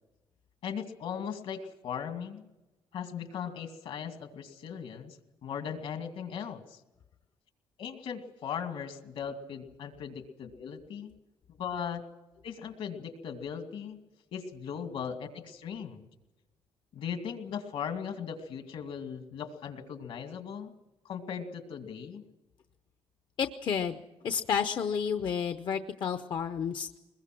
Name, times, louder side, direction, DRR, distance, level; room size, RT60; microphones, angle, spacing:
voice 1, 0.6-2.5 2.9-6.8 7.8-11.1 11.6-12.0 12.4-14.0 14.3-16.0 16.9-20.7 21.0-22.2, left 7 dB, 75° left, 6 dB, 2.4 m, -38 dB
voice 2, 23.4-24.0 24.2-26.9, left 7 dB, 50° left, 9 dB, 0.7 m, -31 dB
21.5 x 21.0 x 6.1 m, 1.1 s
cardioid pair, 130°, 10 cm